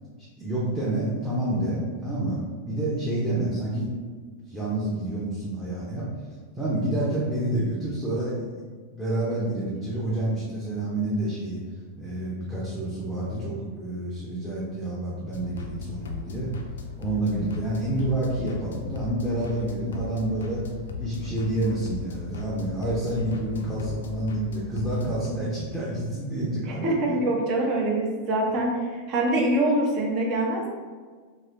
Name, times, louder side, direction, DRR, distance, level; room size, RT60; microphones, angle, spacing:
voice 1, 0.4-2.4 2.7-3.9 4.5-6.1 6.6-8.5 8.9-11.6 12.0-16.5 17.0-20.6 21.0-27.2, right 1 dB, 5° right, -8 dB, 0.7 m, -28 dB
sound 1, 15.3-25.3, left 6 dB, 65° left, 0.3 m, -37 dB
voice 2, 26.8-28.8 29.1-30.7, right 1 dB, 40° right, -1 dB, 0.7 m, -24 dB
3.1 x 2.8 x 2.6 m, 1.5 s
figure-of-eight pair, 90°, 0 cm